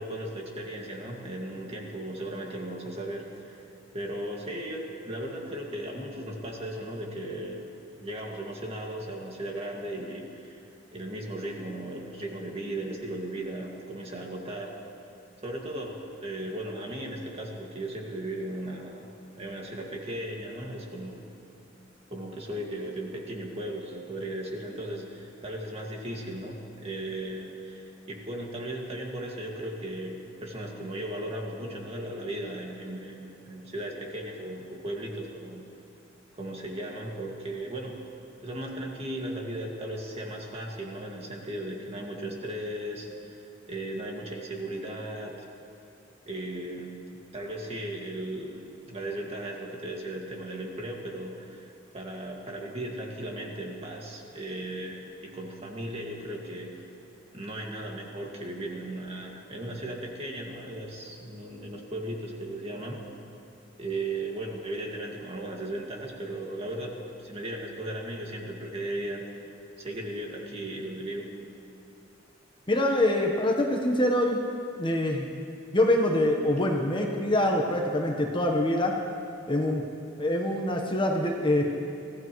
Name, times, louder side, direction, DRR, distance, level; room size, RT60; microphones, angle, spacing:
voice 1, 0.0-3.7 3.9-7.7 8.0-10.6 10.9-14.8 15.4-19.1 19.3-21.3 22.1-35.6 36.3-38.0 38.4-43.4 43.7-45.4 46.3-56.8 57.3-63.0 63.8-69.3 69.8-71.3, right 1 dB, 30° right, -1 dB, 2.0 m, -36 dB
voice 2, 72.7-74.4 74.8-75.2 75.7-79.0 79.5-79.8 80.2-81.8, left 1 dB, 25° left, 1 dB, 1.1 m, -25 dB
24.0 x 15.5 x 3.1 m, 2.5 s
head